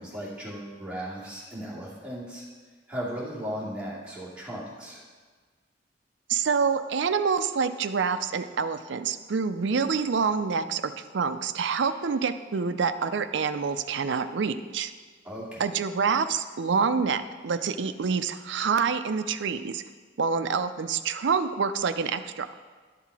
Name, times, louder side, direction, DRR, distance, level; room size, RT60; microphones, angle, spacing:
voice 1, 0.0-2.5 2.9-5.0 15.2-15.6, equal, 5° right, -8 dB, 2.4 m, -36 dB
voice 2, 6.3-14.9 15.6-19.8 20.2-22.5, right 5 dB, 65° right, 11 dB, 0.4 m, -27 dB
11.5 x 5.7 x 4.7 m, 1.5 s
head